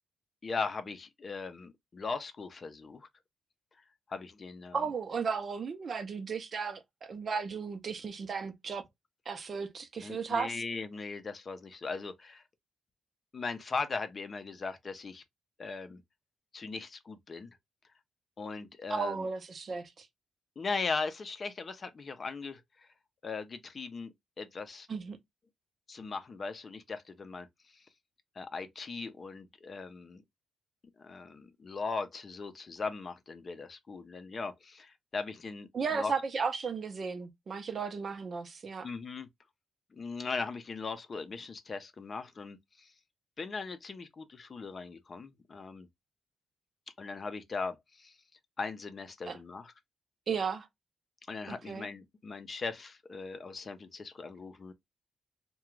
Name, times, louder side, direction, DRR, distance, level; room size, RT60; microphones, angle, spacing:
voice 1, 0.4-3.1 4.1-4.8 10.0-12.4 13.3-15.2 15.6-16.0 16.5-17.5 18.4-19.3 20.6-22.9 23.2-24.9 25.9-27.5 27.7-27.8 28.4-30.2 31.0-36.1 38.8-39.3 39.9-42.9 43.4-45.9 47.0-48.1 48.6-49.7 51.3-54.7, left 4 dB, 45° left, 0.5 m, -39 dB
voice 2, 4.7-8.8 9.3-10.6 18.9-20.1 24.9-25.2 35.7-38.9 49.3-49.4 50.3-50.7 51.5-51.9, right 5 dB, 50° right, 0.6 m, -35 dB
2.4 x 2.2 x 3.0 m
cardioid pair, 85°, 0 cm